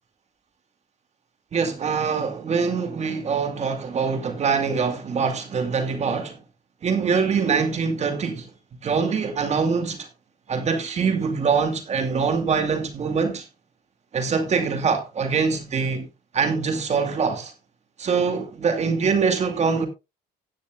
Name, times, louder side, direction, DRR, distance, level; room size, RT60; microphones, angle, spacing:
voice 1, 1.5-6.4 6.8-8.5 8.8-10.1 10.5-13.5 14.1-16.1 16.3-17.5 18.0-19.9, right 5 dB, 40° right, 2.3 m, -24 dB
16.0 x 9.3 x 2.3 m
cardioid pair, 110°, 17 cm